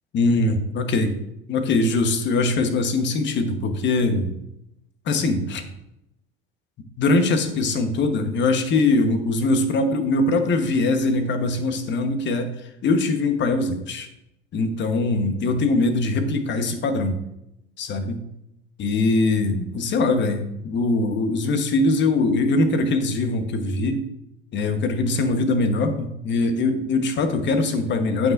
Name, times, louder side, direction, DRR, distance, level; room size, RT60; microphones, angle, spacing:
voice 1, 0.1-1.1 1.5-4.3 5.1-5.7 7.0-12.5 12.8-14.1 14.5-17.2 17.8-18.2 18.8-24.0 24.5-28.3, left 2 dB, 40° left, 7 dB, 1.3 m, -22 dB
15.0 x 5.6 x 2.6 m, 0.85 s
figure-of-eight pair, 70°, 30 cm